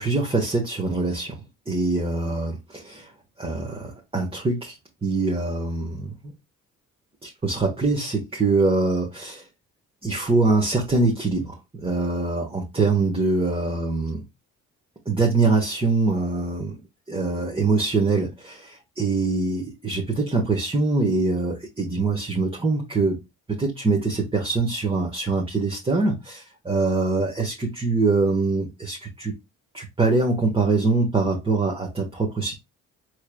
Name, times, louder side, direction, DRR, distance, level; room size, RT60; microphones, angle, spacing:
voice 1, 0.0-1.4 1.7-3.1 3.4-4.8 5.0-6.3 7.2-9.4 10.0-14.2 15.0-16.8 17.1-23.2 23.5-29.3 29.7-32.5, right 3 dB, 20° right, 1.2 m, -23 dB
4.7 x 3.2 x 2.2 m
cardioid pair, 90°, 30 cm